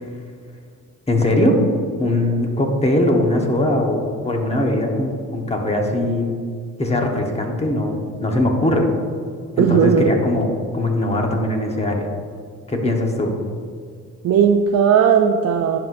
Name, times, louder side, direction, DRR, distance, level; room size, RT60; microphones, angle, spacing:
voice 1, 1.1-1.6 2.0-6.4 6.8-8.9 9.6-12.1 12.7-13.3, left 1 dB, 20° left, 1 dB, 1.2 m, -20 dB
voice 2, 9.6-10.2 14.2-15.8, right 7 dB, 55° right, 4 dB, 0.5 m, -16 dB
10.5 x 5.5 x 2.6 m, 2.2 s
cardioid pair, 90°, 30 cm